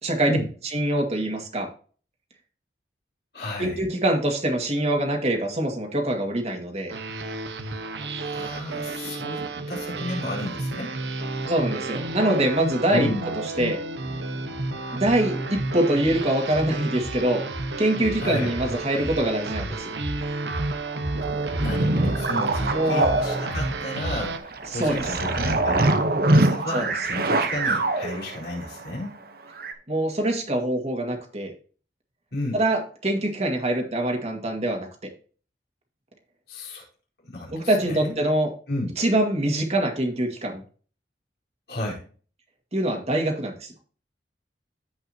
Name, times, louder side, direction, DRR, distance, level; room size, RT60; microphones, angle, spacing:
voice 1, 0.0-0.3 0.6-1.7 3.6-6.9 11.5-13.1 13.6-13.8 14.9-17.4 17.8-19.9 22.7-23.1 24.7-25.1 26.7-26.9 29.9-31.5 32.5-34.9 37.5-38.5 39.0-40.6 42.7-43.7, right 1 dB, 35° right, 2 dB, 2.1 m, -24 dB
voice 2, 3.3-3.8 8.2-10.9 12.9-13.3 18.1-18.5 21.6-26.0 26.3-29.1 32.3-32.6 36.5-36.8 37.2-38.1 38.7-38.9 41.7-42.0, left 1 dB, 65° left, -3 dB, 4.3 m, -32 dB
sound 1, 6.9-24.4, right 2 dB, 80° right, 1.2 m, -31 dB
sound 2, 21.1-29.0 29.6-29.7, right 2 dB, 55° right, 1.0 m, -24 dB
15.0 x 5.4 x 2.9 m, 0.39 s
head